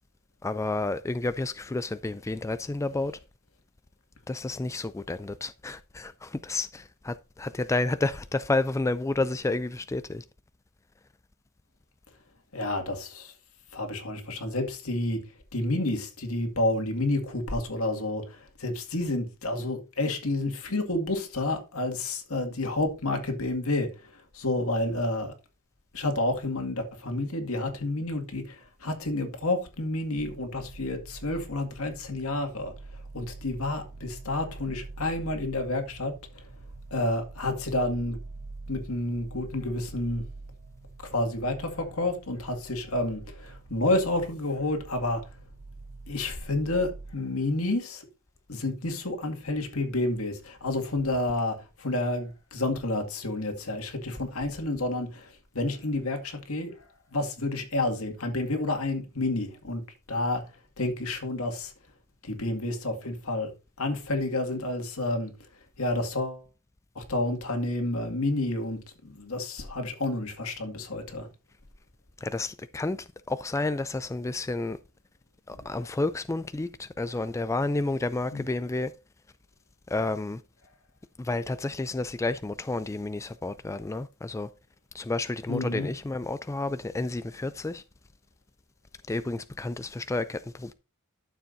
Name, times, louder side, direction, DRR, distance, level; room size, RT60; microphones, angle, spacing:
voice 1, 0.4-3.2 4.3-10.2 72.2-74.8 75.5-78.9 79.9-80.4 81.2-84.5 84.9-87.8 89.1-90.7, left 2 dB, 15° left, 0.3 m, -30 dB
voice 2, 12.5-13.3 13.7-15.2 15.5-25.3 25.9-36.5 36.9-38.2 38.7-40.2 41.0-45.3 46.1-48.1 48.5-59.8 60.1-61.7 62.2-63.5 63.8-66.4 67.0-71.3 75.5-75.7 78.3-78.4 85.5-85.9, left 2 dB, 75° left, 2.1 m, -30 dB
sound 1, 30.2-47.2, right 3 dB, 80° right, 1.0 m, -45 dB
12.0 x 7.1 x 2.7 m
head